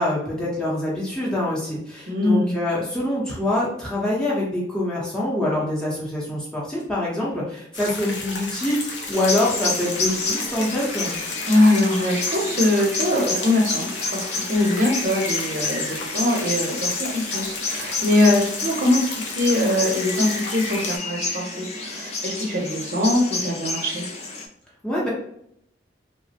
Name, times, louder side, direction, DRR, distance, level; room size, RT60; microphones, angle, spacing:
voice 1, 0.0-11.1 24.8-25.1, left 1 dB, 5° left, -6 dB, 0.7 m, -25 dB
voice 2, 2.1-2.5 11.5-24.0, left 1 dB, 50° right, -3 dB, 0.6 m, -22 dB
sound 1, 7.7-21.0, left 3 dB, 85° left, 0.7 m, -33 dB
sound 2, 9.1-24.5, left 3 dB, 35° left, 0.4 m, -30 dB
3.2 x 2.0 x 2.7 m, 0.70 s
head